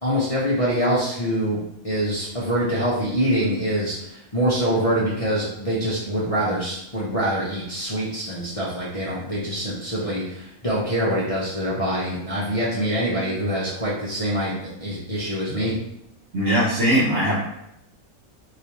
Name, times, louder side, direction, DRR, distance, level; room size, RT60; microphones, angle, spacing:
voice 1, 0.0-15.8, equal, 35° left, -8 dB, 0.6 m, -25 dB
voice 2, 16.3-17.4, equal, 55° right, -8 dB, 1.0 m, -20 dB
3.2 x 2.9 x 2.8 m, 0.80 s
omnidirectional pair, 1.6 m